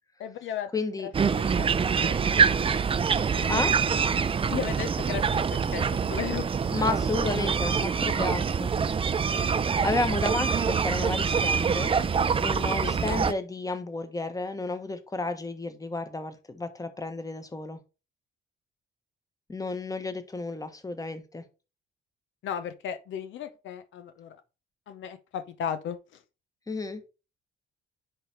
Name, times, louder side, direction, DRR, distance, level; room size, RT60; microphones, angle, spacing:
voice 1, 0.2-0.7 1.0-1.1 1.4-1.7 2.0-2.2 4.5-6.5 12.8-12.9 22.4-24.4 24.9-26.2, left 8 dB, 75° left, 0.7 m, -35 dB
voice 2, 0.7-1.1 3.5-3.7 6.7-8.7 9.8-12.0 12.4-17.8 19.5-21.4 26.7-27.0, left 3 dB, 15° left, 1.2 m, -32 dB
sound 1, 1.1-13.3, right 6 dB, 25° right, 0.5 m, -25 dB
10.0 x 3.3 x 4.4 m
cardioid pair, 90°, 20 cm